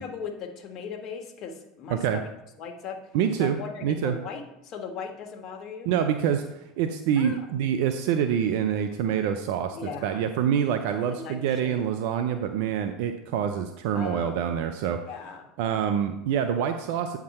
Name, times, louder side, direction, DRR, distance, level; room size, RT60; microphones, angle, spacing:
voice 1, 0.0-2.2 2.6-3.1 3.4-5.9 7.2-7.5 9.7-10.3 11.1-11.9 13.9-14.5 14.8-15.5, left 6 dB, 50° left, 4 dB, 1.5 m, -38 dB
voice 2, 1.9-2.2 3.1-4.2 5.9-6.5 6.8-9.8 10.0-15.0 15.6-17.2, right 8 dB, 65° right, 8 dB, 0.6 m, -26 dB
8.6 x 6.0 x 4.3 m, 0.83 s
hypercardioid pair, 80°, 0 cm